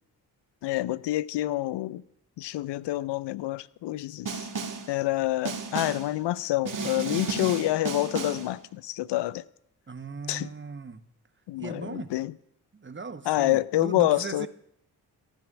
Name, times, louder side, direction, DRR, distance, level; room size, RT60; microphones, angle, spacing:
voice 1, 0.6-2.0 2.4-4.5 4.9-9.4 10.3-10.5 11.5-12.3 13.3-14.5, left 15 dB, 70° left, 0.6 m, -27 dB
Snare drum, 4.3-4.9 5.5-6.1 6.7-8.5, right 4 dB, 45° right, 1.9 m, -33 dB
voice 2, 9.9-11.0 11.6-12.1 12.7-14.5, right 5 dB, 25° right, 1.3 m, -38 dB
14.5 x 9.1 x 6.2 m
hypercardioid pair, 45°, 44 cm